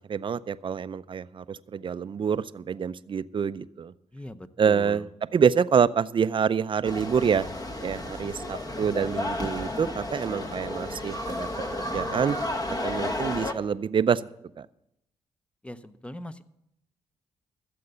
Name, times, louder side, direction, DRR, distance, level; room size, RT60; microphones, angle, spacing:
voice 1, 0.0-3.9 4.6-7.5 7.8-11.5 11.8-12.4 12.8-14.2 14.6-14.7, right 7 dB, 45° right, 15 dB, 0.5 m, -26 dB
voice 2, 4.1-5.0 15.6-16.4, left 1 dB, 10° left, 12 dB, 0.7 m, -40 dB
sound 1, 6.8-13.5, left 1 dB, 30° left, 1.2 m, -32 dB
13.5 x 7.7 x 6.8 m, 0.81 s
cardioid pair, 85°, 12 cm